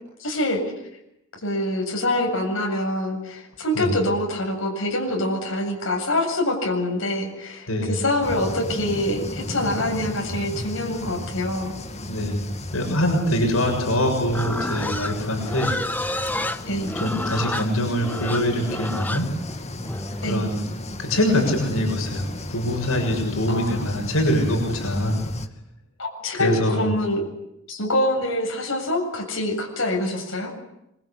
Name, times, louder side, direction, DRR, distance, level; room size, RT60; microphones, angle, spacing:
voice 1, 0.2-0.6 1.4-11.8 16.7-16.9 20.2-20.4 23.5-23.8 26.0-27.2 27.7-30.5, left 1 dB, 70° left, 1 dB, 7.9 m, -25 dB
voice 2, 7.7-8.0 12.1-15.8 16.0-16.2 17.0-19.3 20.2-20.6 21.0-25.2 26.3-26.9, left 1 dB, 90° left, 2 dB, 7.0 m, -24 dB
sound 1, 8.2-25.5, left 1 dB, 35° left, 2.4 m, -34 dB
Livestock farm animals working animals, 14.3-20.4, left 1 dB, 10° left, 1.2 m, -30 dB
26.5 x 24.0 x 8.5 m, 0.83 s
head